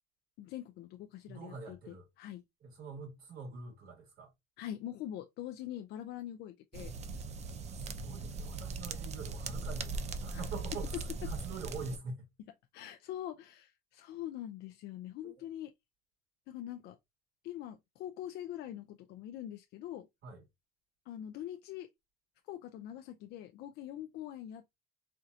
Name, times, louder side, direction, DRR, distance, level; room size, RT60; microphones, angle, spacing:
voice 1, 0.4-2.4 4.6-6.9 10.3-10.4 12.7-15.7 16.5-17.0 17.4-20.1 21.1-21.9 22.4-24.8, left 12 dB, 75° left, 0.4 m, -44 dB
voice 2, 1.3-2.1 2.6-4.3 7.7-12.3 15.2-15.4 20.2-20.4, right 4 dB, 65° right, 2.5 m, -45 dB
sound 1, 6.7-12.0, right 3 dB, 40° right, 0.6 m, -39 dB
4.4 x 2.6 x 2.4 m
cardioid pair, 110°, 17 cm